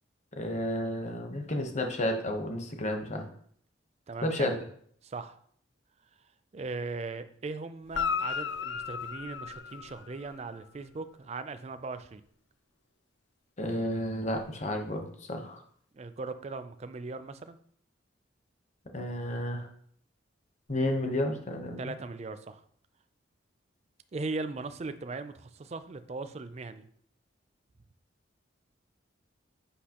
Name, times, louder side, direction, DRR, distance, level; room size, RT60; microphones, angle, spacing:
voice 1, 0.3-3.2 4.2-4.6 13.6-15.6 18.9-19.7 20.7-21.9, left 1 dB, 35° left, 4 dB, 0.9 m, -31 dB
voice 2, 4.1-4.6 5.0-5.4 6.5-12.2 15.9-17.6 21.8-22.6 24.1-26.9, right 3 dB, 35° right, 11 dB, 0.4 m, -39 dB
Guitar, 7.9-10.5 14.3-14.4, left 6 dB, 65° left, 0.5 m, -34 dB
8.3 x 5.6 x 2.9 m, 0.62 s
head